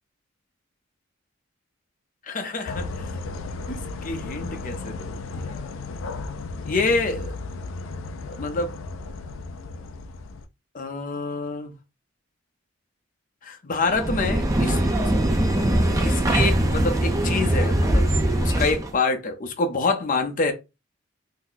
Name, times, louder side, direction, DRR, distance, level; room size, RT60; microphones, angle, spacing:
voice 1, 2.3-2.9 3.7-5.6 6.7-7.4 8.3-8.8 10.7-11.7 13.4-14.8 16.0-18.0 18.4-20.5, left 3 dB, 45° left, 0.7 m, -27 dB
sound 1, 2.7-10.5, left 3 dB, 85° left, 0.4 m, -34 dB
sound 2, 13.9-18.9, right 1 dB, 15° right, 0.5 m, -21 dB
2.8 x 2.1 x 3.9 m
head